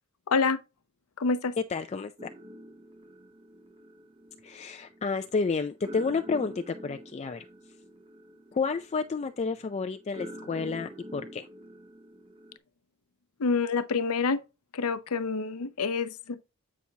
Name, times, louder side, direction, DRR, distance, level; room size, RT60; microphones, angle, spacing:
voice 1, 0.3-0.6 1.2-1.6 13.4-14.4 14.7-16.4, left 4 dB, 75° left, 0.6 m, -27 dB
voice 2, 1.7-2.1 4.4-7.4 8.5-11.5, left 4 dB, 30° left, 0.3 m, -30 dB
sound 1, 2.2-12.6, equal, 25° right, 0.6 m, -47 dB
8.4 x 5.8 x 2.8 m
head